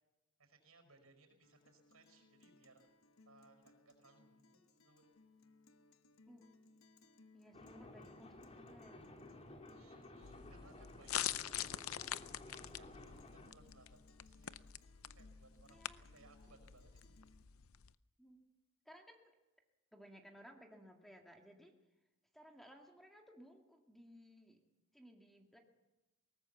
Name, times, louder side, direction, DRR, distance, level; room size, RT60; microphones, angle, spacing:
voice 1, 0.4-2.9 3.2-5.1 9.6-14.6 15.1-17.1, right 3 dB, 90° right, 5 dB, 5.2 m, -66 dB
Guitar, 1.4-17.4, left 3 dB, 75° left, 1.1 m, -67 dB
voice 2, 7.3-9.1 15.6-16.0 18.2-18.4 18.9-19.3 19.9-21.8 22.3-24.6 24.9-25.6, equal, ahead, 2 dB, 2.0 m, -59 dB
sound 1, 7.5-13.5, left 1 dB, 30° left, 2.4 m, -55 dB
sound 2, 10.2-17.9, left 11 dB, 90° left, 0.6 m, -45 dB
21.5 x 19.0 x 7.1 m, 1.0 s
head